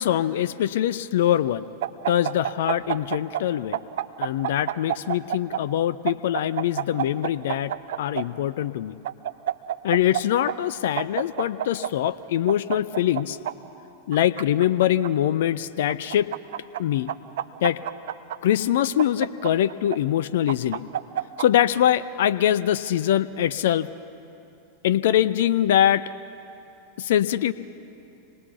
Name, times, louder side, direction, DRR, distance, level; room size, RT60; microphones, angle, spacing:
voice 1, 0.0-1.7 2.1-3.8 4.2-8.9 9.8-13.4 14.1-16.3 16.8-17.1 17.6-17.8 18.4-20.8 21.4-23.9 24.8-26.1 27.0-27.5, left 11 dB, 55° left, 16 dB, 0.5 m, -23 dB
sound 1, 1.8-3.4 3.7-5.6 6.1-8.2 9.0-10.2 10.5-10.6 11.0-11.9 12.5-13.5 14.1-15.1 15.9-16.8 17.1-18.4 19.0-20.0 20.5-21.5, right 11 dB, 55° right, 0.6 m, -28 dB
26.0 x 20.0 x 5.6 m, 2.7 s
figure-of-eight pair, 90°, 0 cm